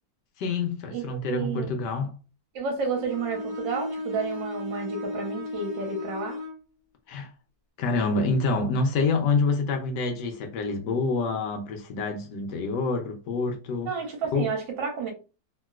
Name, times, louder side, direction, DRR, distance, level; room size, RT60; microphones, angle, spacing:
voice 1, 0.4-2.1 7.1-7.3 7.8-13.9 14.3-14.5, left 3 dB, 70° left, 1.1 m, -27 dB
voice 2, 0.9-1.7 2.5-6.4 13.8-15.1, right 5 dB, 75° right, 1.6 m, -31 dB
Bowed string instrument, 2.8-6.6, left 2 dB, 20° right, 1.1 m, -35 dB
3.0 x 2.8 x 2.3 m
omnidirectional pair, 2.1 m